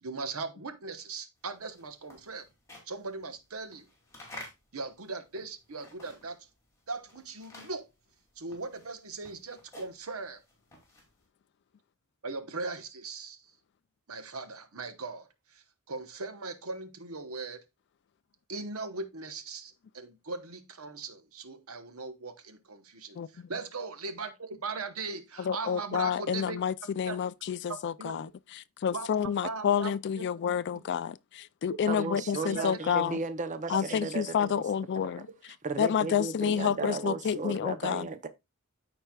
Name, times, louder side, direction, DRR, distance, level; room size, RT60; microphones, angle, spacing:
voice 1, 0.0-2.5 2.9-3.9 4.7-6.5 6.9-7.8 8.4-10.4 12.2-13.4 14.1-17.6 18.5-26.6 27.1-27.2 28.0-28.1 28.9-30.2 30.7-30.8 31.7-31.8 32.4-32.7 36.8-36.9, right 3 dB, 70° right, 1.1 m, -39 dB
sound 1, 1.5-6.5 6.8-11.2, left 2 dB, 15° left, 2.7 m, -51 dB
voice 2, 23.2-23.5 25.4-33.2 33.7-35.3 35.8-38.1, left 8 dB, 50° left, 0.3 m, -29 dB
voice 3, 31.9-34.5 35.1-35.2 35.6-38.3, right 4 dB, 35° right, 0.6 m, -35 dB
13.5 x 4.5 x 2.3 m
head